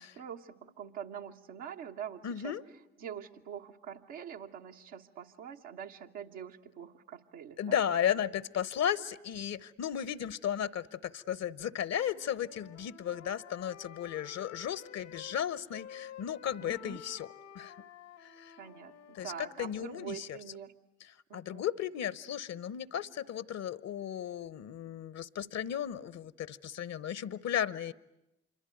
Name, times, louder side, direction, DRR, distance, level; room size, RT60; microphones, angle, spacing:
voice 1, 0.0-2.6 3.0-7.8 16.6-17.0 18.6-20.7 21.3-21.6, right 8 dB, 80° right, 3 dB, 1.3 m, -45 dB
voice 2, 2.2-2.6 7.6-17.3 17.5-17.7 18.2-18.5 19.1-20.4 21.3-27.9, left 9 dB, 60° left, 20 dB, 0.9 m, -35 dB
Wind instrument woodwind instrument, 11.9-15.4 15.7-19.9, left 9 dB, 85° left, 1.8 m, -51 dB
26.5 x 23.5 x 9.4 m, 0.88 s
hypercardioid pair, 45°, 30 cm